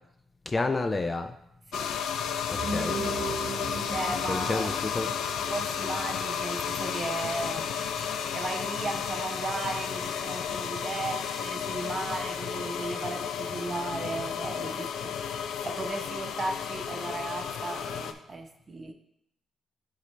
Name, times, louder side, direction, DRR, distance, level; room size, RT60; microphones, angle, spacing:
voice 1, 0.5-1.4 2.5-3.0 4.3-5.1, left 3 dB, 25° left, 7 dB, 0.4 m, -30 dB
sound 1, 1.7-18.1, left 8 dB, 85° left, 0.4 m, -33 dB
sound 2, 2.4-7.2, right 3 dB, 85° right, 1.0 m, -37 dB
voice 2, 3.9-4.8 5.5-7.8 8.3-15.2 15.6-18.9, right 3 dB, 30° right, 5 dB, 0.8 m, -35 dB
9.2 x 3.9 x 3.3 m, 0.79 s
cardioid pair, 110°, 0 cm